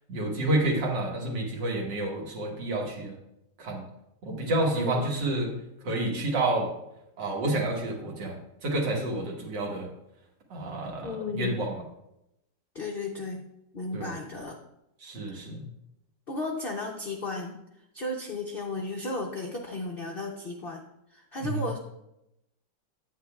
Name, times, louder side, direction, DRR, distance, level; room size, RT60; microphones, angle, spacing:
voice 1, 0.1-3.1 3.6-3.9 4.2-5.5 5.8-6.7 7.2-8.4 8.6-9.9 10.5-11.8 13.9-14.1 15.0-15.6 21.5-21.7, right 1 dB, 75° right, -1 dB, 2.0 m, -29 dB
voice 2, 11.0-11.6 12.7-13.4 13.7-14.6 16.3-17.6 17.9-20.8 21.1-21.8, left 2 dB, 75° left, 0 dB, 0.5 m, -34 dB
8.9 x 8.3 x 2.3 m, 0.85 s
omnidirectional pair, 2.0 m